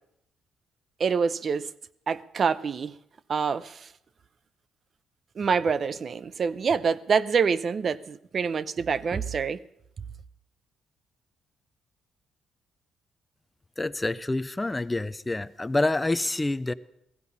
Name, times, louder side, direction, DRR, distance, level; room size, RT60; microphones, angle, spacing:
voice 1, 1.0-1.7 2.1-2.9 3.3-3.9 5.4-9.6, right 6 dB, 45° right, 0.6 m, -26 dB
voice 2, 13.8-16.7, left 2 dB, 15° left, 0.5 m, -27 dB
16.5 x 14.5 x 5.5 m
cardioid pair, 90°, 0 cm